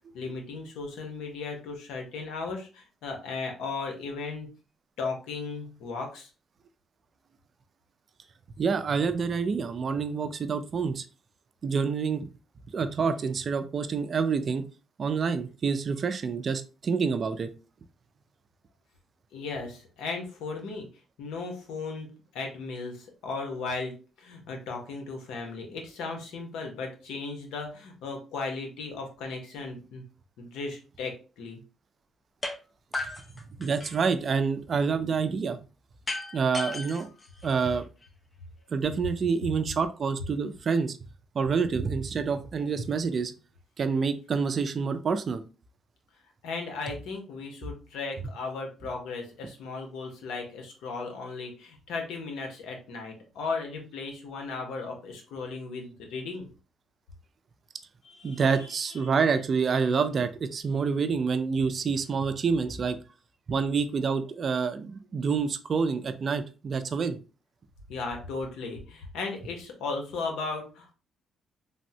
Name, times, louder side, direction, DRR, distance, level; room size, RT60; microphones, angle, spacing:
voice 1, 0.1-4.5 5.0-6.3 19.3-20.9 21.2-23.9 24.2-30.0 30.4-31.6 46.4-56.5 58.0-58.8 67.9-70.9, left 4 dB, 85° left, 3 dB, 0.8 m, -36 dB
voice 2, 8.6-11.0 11.6-12.3 12.7-14.6 15.0-17.5 33.6-35.6 36.3-37.1 37.4-37.8 38.7-41.0 41.3-43.3 43.8-45.4 58.2-63.0 63.5-67.2, right 5 dB, 50° right, 10 dB, 0.3 m, -27 dB
sound 1, 32.4-32.6 32.9-34.1 36.1-38.1, left 2 dB, 25° left, 0.6 m, -36 dB
3.4 x 2.0 x 2.7 m, 0.34 s
cardioid pair, 90°, 0 cm